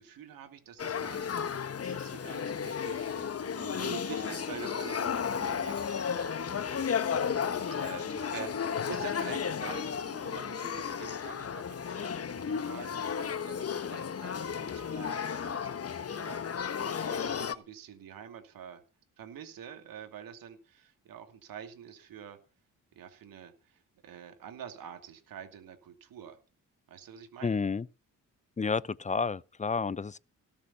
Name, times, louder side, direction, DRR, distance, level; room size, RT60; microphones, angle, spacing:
voice 1, 0.0-1.4 1.8-18.8 19.2-22.4 22.9-26.4 26.9-27.6, right 8 dB, 90° right, 2.7 m, -47 dB
Male speech man speaking / Child speech kid speaking / Conversation, 0.8-17.5, left 7 dB, 45° left, 1.2 m, -33 dB
voice 2, 27.4-27.8 28.6-30.2, left 5 dB, 20° left, 0.6 m, -30 dB
18.0 x 7.3 x 6.9 m
cardioid pair, 85°, 33 cm